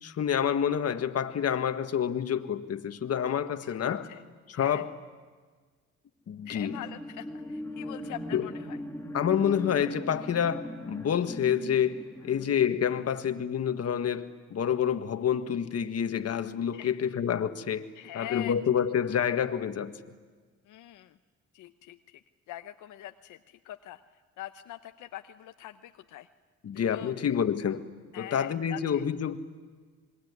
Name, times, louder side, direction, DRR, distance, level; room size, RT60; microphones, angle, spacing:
voice 1, 0.0-4.0 4.5-5.0 6.3-6.8 8.3-8.5 9.1-19.9 26.6-27.8 28.2-29.4, left 8 dB, 55° left, 1.7 m, -28 dB
voice 2, 3.5-4.2 4.5-4.9 6.4-8.8 16.7-16.9 18.0-18.5 20.7-21.2 21.5-22.2 22.5-24.0 24.4-26.3 26.9-27.1 28.1-29.1, left 14 dB, 85° left, 0.9 m, -43 dB
sound 1, 6.4-14.2 14.6-14.7, left 1 dB, 10° left, 2.7 m, -40 dB
26.5 x 22.0 x 9.8 m
cardioid pair, 90°, 30 cm